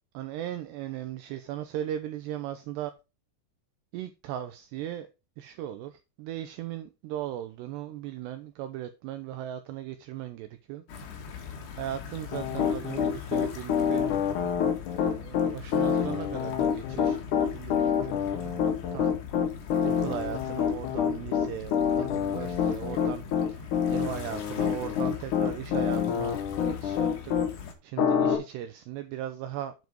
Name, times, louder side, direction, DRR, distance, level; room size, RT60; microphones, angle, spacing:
voice 1, 0.1-2.9 3.9-5.1 5.4-10.8 11.7-14.1 15.0-18.5 18.9-19.2 19.8-27.3 27.6-29.7, right 11 dB, 85° right, 2.4 m, -38 dB
sound 1, 10.9-27.7, left 6 dB, 60° left, 3.5 m, -42 dB
Piano, 12.3-27.5 28.0-28.4, left 8 dB, 85° left, 1.7 m, -27 dB
7.9 x 7.3 x 4.5 m
omnidirectional pair, 5.7 m